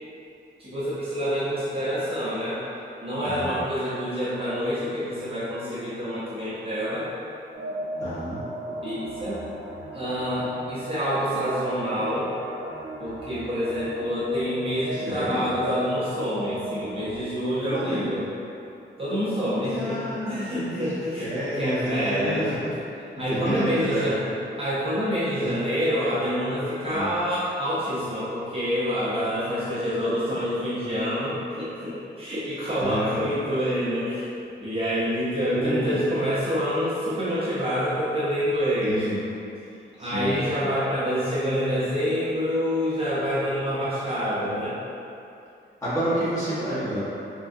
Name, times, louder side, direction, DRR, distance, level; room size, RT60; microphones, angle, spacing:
voice 1, 0.6-2.6 3.0-7.1 8.8-9.4 9.9-12.4 13.0-18.3 19.0-22.5 23.2-24.2 24.6-34.3 34.6-39.1 40.0-44.8, equal, 30° right, -11 dB, 0.6 m, -27 dB
sound 1, 7.5-17.2, right 1 dB, 85° right, 0.7 m, -36 dB
voice 2, 8.0-8.4 14.9-15.5 17.7-18.0 19.4-22.5 23.3-24.1 25.4-25.5 26.9-27.1 32.8-33.3 35.5-36.0 38.9-39.2 40.0-40.4 45.8-47.0, equal, 15° left, -12 dB, 1.2 m, -29 dB
3.7 x 3.2 x 2.6 m, 2.7 s
wide cardioid pair, 170°, 19 cm